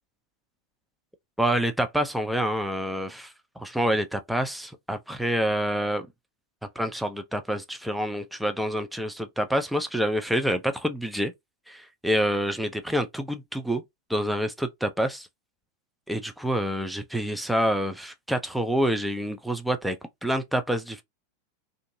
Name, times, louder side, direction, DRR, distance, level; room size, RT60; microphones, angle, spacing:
voice 1, 1.4-6.0 6.8-11.3 11.7-13.8 14.1-15.3 16.1-21.0, equal, ahead, 0.4 m, -27 dB
2.6 x 2.5 x 2.6 m
figure-of-eight pair, 90°, 0 cm